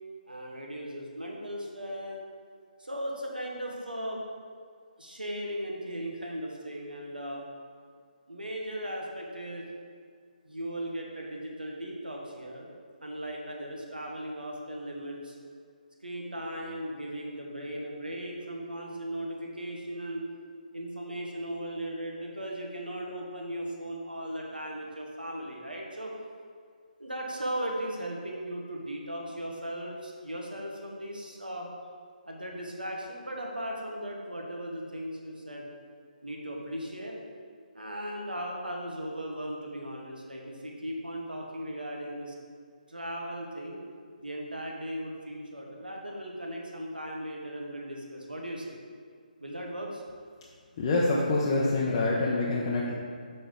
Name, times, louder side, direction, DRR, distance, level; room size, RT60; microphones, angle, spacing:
voice 1, 0.3-2.2 2.8-4.2 5.0-7.4 8.3-9.7 10.4-12.7 13.0-15.4 16.0-20.2 20.7-26.1 27.0-31.7 32.3-35.7 36.2-37.1 37.7-42.3 42.9-43.8 44.2-48.8 49.4-50.0, equal, 80° right, -1 dB, 1.4 m, -37 dB
voice 2, 50.8-52.9, left 2 dB, 30° left, -5 dB, 0.7 m, -26 dB
6.7 x 5.4 x 3.8 m, 2.1 s
figure-of-eight pair, 145°, 5 cm